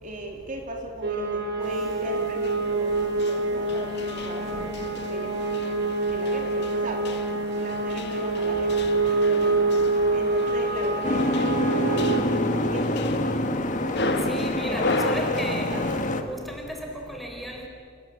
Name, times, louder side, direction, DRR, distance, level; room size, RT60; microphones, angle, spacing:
voice 1, 0.0-5.8 6.1-7.1 7.5-8.8 9.3-9.6 10.1-12.9 14.0-16.2, right 2 dB, 40° right, 1 dB, 3.3 m, -37 dB
sound 1, 1.0-12.2, right 3 dB, 55° right, 3.6 m, -26 dB
sound 2, 1.6-16.2, left 2 dB, 55° left, 1.8 m, -35 dB
Boat Water vehicle, 11.0-16.2, left 1 dB, 40° left, 1.7 m, -26 dB
voice 2, 14.3-15.7 16.3-17.7, equal, ahead, 1 dB, 4.2 m, -35 dB
28.5 x 20.0 x 8.6 m, 2.3 s
head